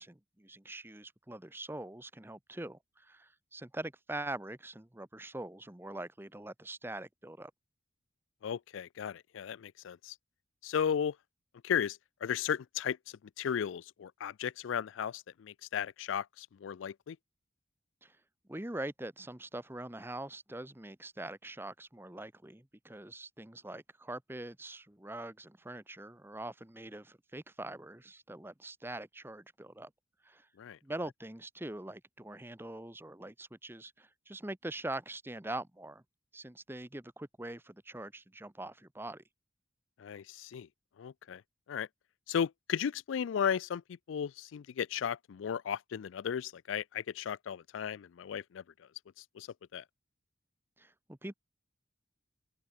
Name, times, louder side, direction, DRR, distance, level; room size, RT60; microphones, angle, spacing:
voice 1, 0.0-7.5 18.0-18.2 18.5-29.9 30.2-30.5 30.8-36.0 36.3-39.2 50.8-51.3, right 1 dB, 10° right, 0.9 m, -43 dB
voice 2, 8.4-10.1 10.6-11.1 11.6-13.0 13.4-17.2 30.6-30.8 40.0-40.7 41.0-41.4 41.7-41.9 42.3-43.8 44.1-48.6 49.4-49.5 49.7-49.8, left 8 dB, 80° left, 0.4 m, -35 dB
open air
head